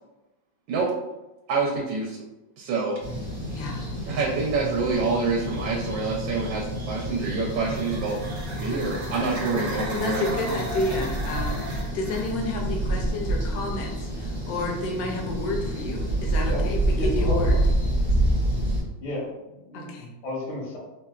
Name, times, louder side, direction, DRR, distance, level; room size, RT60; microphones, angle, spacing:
voice 1, 1.5-2.2 2.6-3.0 4.1-8.2 8.5-10.2, right 4 dB, 80° right, -1 dB, 1.3 m, -26 dB
sound 1, 3.0-18.8, right 1 dB, 25° right, 0.5 m, -28 dB
voice 2, 3.5-3.9 9.9-17.6 19.7-20.1, left 2 dB, 65° left, 1 dB, 0.9 m, -30 dB
sound 2, 7.1-12.4, right 1 dB, 65° right, 0.9 m, -37 dB
voice 3, 16.5-17.4 17.8-18.0 19.0-19.9 20.2-20.8, left 1 dB, 85° left, -7 dB, 1.9 m, -33 dB
4.0 x 2.1 x 2.3 m, 1.0 s
omnidirectional pair, 2.1 m